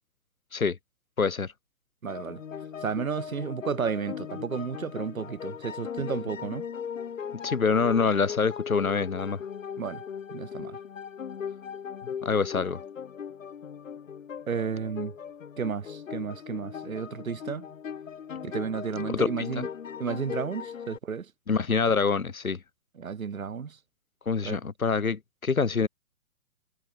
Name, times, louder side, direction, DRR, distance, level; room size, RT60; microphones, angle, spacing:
voice 1, 1.2-1.5 7.4-9.4 12.2-12.8 19.1-19.3 19.6-19.7 21.5-22.6 24.3-25.9, left 5 dB, 85° left, 6.2 m, -25 dB
voice 2, 2.0-2.4 2.8-6.7 9.8-10.0 10.3-10.8 14.5-15.1 15.6-17.7 18.4-19.7 20.0-21.3 23.0-23.8 24.4-24.6, right 6 dB, 80° right, 2.6 m, -32 dB
sound 1, 2.1-21.0, left 7 dB, 70° left, 6.2 m, -38 dB
hypercardioid pair, 140°, 41 cm